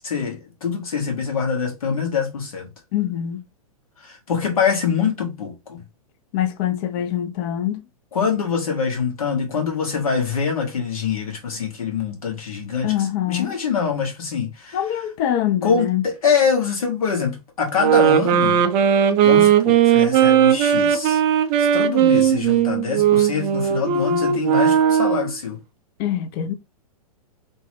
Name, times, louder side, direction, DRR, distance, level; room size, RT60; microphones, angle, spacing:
voice 1, 0.0-2.7 4.0-5.8 8.1-14.8 15.6-18.6 19.2-21.2 21.6-25.6, left 6 dB, 65° left, 1.3 m, -24 dB
voice 2, 2.9-3.4 6.3-7.8 12.8-13.5 14.7-16.0 26.0-26.5, left 11 dB, 35° left, 0.4 m, -24 dB
sound 1, 17.8-25.3, right 9 dB, 30° right, 0.4 m, -17 dB
2.9 x 2.1 x 3.1 m
figure-of-eight pair, 110°, 20 cm